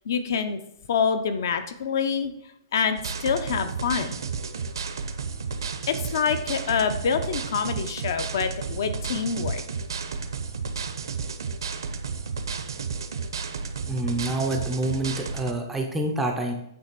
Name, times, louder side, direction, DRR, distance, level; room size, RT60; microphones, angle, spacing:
voice 1, 0.1-0.6 0.9-2.3 2.7-4.2 5.9-9.6, left 6 dB, 45° left, 9 dB, 0.7 m, -26 dB
sound 1, 3.0-15.5, right 5 dB, 70° right, 0.8 m, -32 dB
voice 2, 13.9-16.5, right 1 dB, 5° right, 1 dB, 0.5 m, -27 dB
8.8 x 3.3 x 5.9 m, 0.78 s
hypercardioid pair, 180°, 2 cm